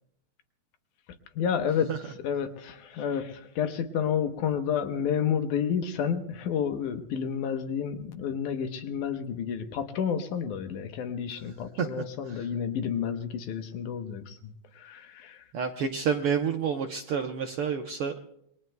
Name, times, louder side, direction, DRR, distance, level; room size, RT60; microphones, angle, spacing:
voice 1, 1.4-1.9 2.2-15.4, left 8 dB, 85° left, 7 dB, 2.6 m, -30 dB
voice 2, 11.8-12.5 15.5-18.1, right 7 dB, 75° right, 4 dB, 1.3 m, -29 dB
28.0 x 22.5 x 2.2 m, 0.74 s
omnidirectional pair, 3.5 m